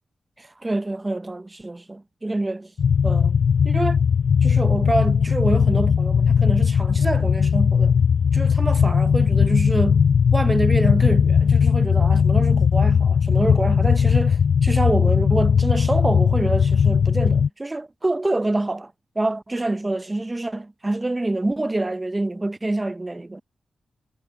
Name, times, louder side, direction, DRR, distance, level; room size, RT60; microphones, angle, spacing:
voice 1, 0.4-2.7 3.0-4.0 4.4-7.9 8.3-10.0 10.3-23.4, right 2 dB, 15° right, 0.6 m, -26 dB
sound 1, 2.8-17.5, left 6 dB, 55° left, 0.4 m, -18 dB
wide cardioid pair, 180°, 0 cm